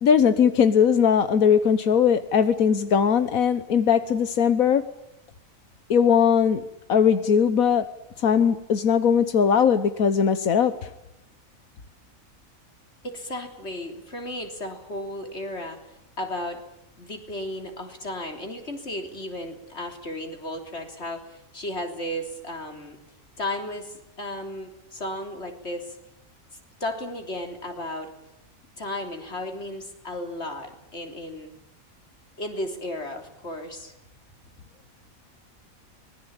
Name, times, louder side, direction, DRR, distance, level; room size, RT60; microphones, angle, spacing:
voice 1, 0.0-4.8 5.9-6.6 6.9-7.8 8.2-10.9, left 7 dB, 90° left, 11 dB, 1.6 m, -20 dB
voice 2, 13.0-15.8 16.2-16.6 17.0-23.0 23.4-26.0 26.8-28.1 28.8-31.5 32.4-33.9, left 1 dB, 50° left, 5 dB, 3.9 m, -34 dB
25.0 x 21.0 x 9.0 m, 0.87 s
omnidirectional pair, 1.4 m